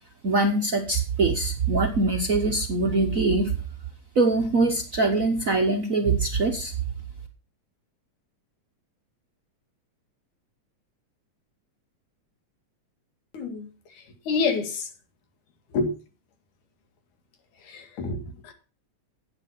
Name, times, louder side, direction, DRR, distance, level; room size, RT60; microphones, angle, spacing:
voice 1, 0.2-3.5 4.2-6.7, right 3 dB, 85° right, 0.7 m, -23 dB
voice 2, 13.3-13.7 14.0-14.9 15.7-15.9 17.6-18.5, left 4 dB, 85° left, 3.5 m, -28 dB
11.5 x 9.2 x 5.7 m
omnidirectional pair, 3.4 m